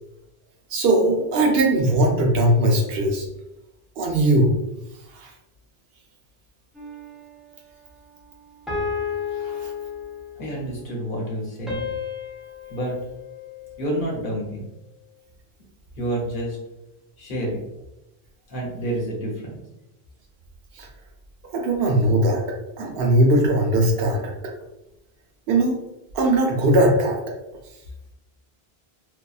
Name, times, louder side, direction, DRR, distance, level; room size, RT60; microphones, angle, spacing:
voice 1, 0.7-3.3 4.0-4.5 5.1-5.3 9.4-9.7 20.8-20.9 21.5-24.5 25.5-25.8 26.1-27.2, right 1 dB, 75° right, 1 dB, 0.8 m, -20 dB
sound 1, 6.7-7.4 8.7-10.5 11.7-14.1, left 6 dB, ahead, 0.4 m, -32 dB
voice 2, 10.3-11.9 12.7-13.0 13.8-14.6 16.0-16.6 17.2-17.6 18.5-19.6, right 1 dB, 60° left, -2 dB, 0.9 m, -28 dB
2.7 x 2.2 x 2.2 m, 0.92 s
omnidirectional pair, 1.0 m